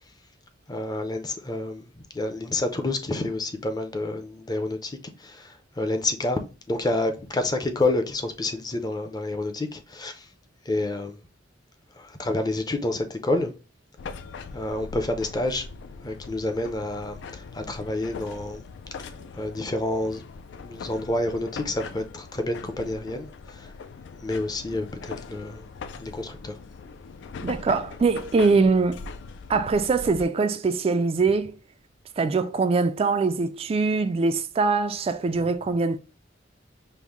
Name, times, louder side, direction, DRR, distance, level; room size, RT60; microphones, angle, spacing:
voice 1, 0.7-6.4 6.7-10.3 10.7-11.1 12.0-13.5 14.5-15.6 16.0-18.6 19.3-20.2 20.6-23.7 24.2-25.7 26.0-26.6, left 2 dB, 20° left, 0.6 m, -29 dB
sound 1, 14.0-30.2, left 5 dB, 65° left, 0.3 m, -41 dB
voice 2, 27.4-29.1 29.5-31.5 32.2-36.0, right 4 dB, 30° right, 0.3 m, -23 dB
5.2 x 2.1 x 3.0 m
head